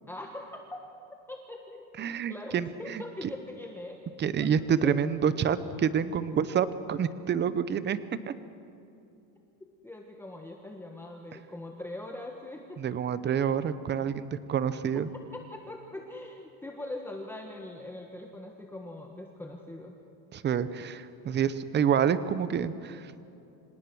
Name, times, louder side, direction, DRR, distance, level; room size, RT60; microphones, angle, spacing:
voice 1, 0.1-0.8 1.3-4.1 4.8-5.0 9.8-13.0 13.2-13.4 14.9-15.0 15.3-20.0, left 1 dB, 5° left, 2 dB, 1.3 m, -42 dB
voice 2, 2.0-3.3 4.2-8.0 8.3-8.4 12.8-15.1 20.3-23.1, right 8 dB, 25° right, 14 dB, 0.8 m, -28 dB
26.0 x 18.5 x 6.2 m, 2.8 s
supercardioid pair, 135°, 45 cm